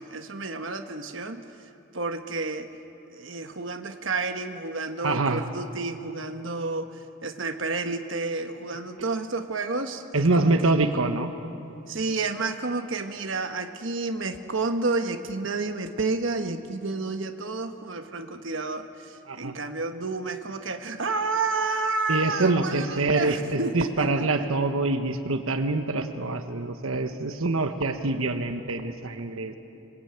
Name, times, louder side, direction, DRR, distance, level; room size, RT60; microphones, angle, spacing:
voice 1, 0.0-1.4 1.9-2.7 3.1-10.7 11.9-24.5, right 3 dB, 65° right, 6 dB, 1.2 m, -30 dB
voice 2, 5.0-5.4 10.1-11.3 19.3-19.5 22.1-29.5, right 2 dB, 80° right, 7 dB, 1.2 m, -25 dB
26.0 x 19.5 x 8.8 m, 2.9 s
head